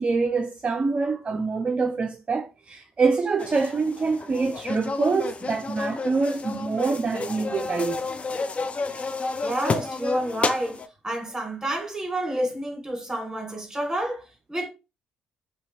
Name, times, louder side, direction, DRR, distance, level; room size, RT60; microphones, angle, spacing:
voice 1, 0.0-8.0, right 4 dB, 35° right, 0.4 m, -25 dB
sound 1, 3.4-10.9, left 4 dB, 35° left, 0.4 m, -31 dB
voice 2, 9.4-10.8 11.0-14.2 14.5-14.7, right 1 dB, 15° right, 1.5 m, -29 dB
2.7 x 2.7 x 2.8 m
hypercardioid pair, 45°, 4 cm